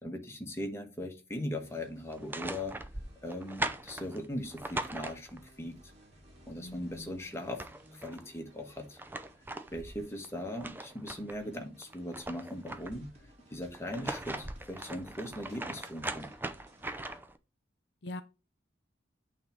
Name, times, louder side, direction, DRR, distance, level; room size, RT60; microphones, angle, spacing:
voice 1, 0.0-2.8 3.2-5.8 6.5-7.7 7.9-9.0 9.7-16.3, left 1 dB, 15° left, 1.3 m, -39 dB
sound 1, 1.6-17.2, equal, 35° right, 2.4 m, -60 dB
sound 2, 2.1-5.6 7.1-7.2 7.4-8.2 8.8-11.4 11.8-13.1 13.7-17.4, right 2 dB, 10° right, 0.5 m, -40 dB
voice 2, 6.6-7.1 18.0-18.2, left 1 dB, 60° left, 0.7 m, -42 dB
8.9 x 3.5 x 5.7 m
head